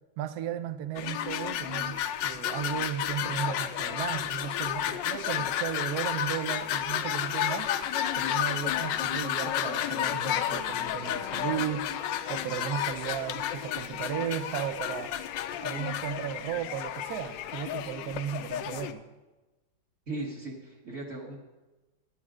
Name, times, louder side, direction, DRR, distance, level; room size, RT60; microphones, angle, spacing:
voice 1, 0.2-7.7 8.1-15.2 15.6-19.0, right 10 dB, 70° right, 12 dB, 1.0 m, -35 dB
sound 1, 1.0-18.9, left 11 dB, 80° left, 1.2 m, -32 dB
voice 2, 20.1-21.4, right 2 dB, 40° right, -2 dB, 1.4 m, -37 dB
10.5 x 8.7 x 4.9 m, 1.1 s
omnidirectional pair, 2.0 m